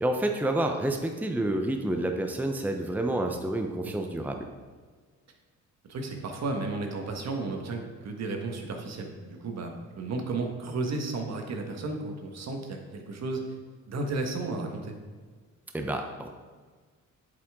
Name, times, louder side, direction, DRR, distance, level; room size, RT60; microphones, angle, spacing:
voice 1, 0.0-4.4 15.7-16.3, right 1 dB, 5° right, 4 dB, 0.7 m, -29 dB
voice 2, 5.9-13.4 13.9-14.9, right 3 dB, 60° right, 3 dB, 1.5 m, -33 dB
8.5 x 7.6 x 3.7 m, 1.5 s
cardioid pair, 90°, 30 cm